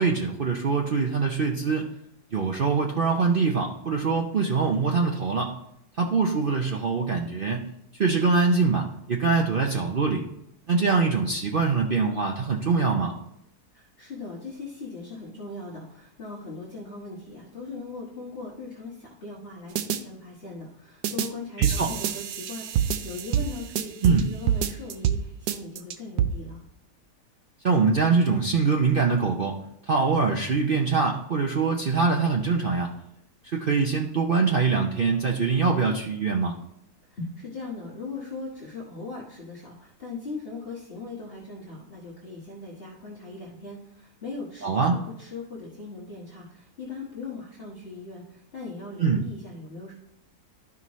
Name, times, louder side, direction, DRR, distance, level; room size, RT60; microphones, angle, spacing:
voice 1, 0.0-1.9 2.3-5.5 6.0-7.7 7.9-10.3 10.7-13.1 21.6-21.9 24.0-24.2 27.6-29.6 29.9-32.9 33.4-36.5 44.6-45.0 49.0-49.2, right 4 dB, 60° right, 1 dB, 0.5 m, -23 dB
voice 2, 13.7-26.6 37.0-49.9, left 3 dB, 40° left, -5 dB, 1.4 m, -39 dB
sound 1, 19.8-20.0 21.0-21.3 21.6-24.2 24.5-25.2 25.5-26.3, right 9 dB, 80° right, 1.1 m, -25 dB
12.0 x 5.5 x 3.1 m, 0.79 s
omnidirectional pair, 1.8 m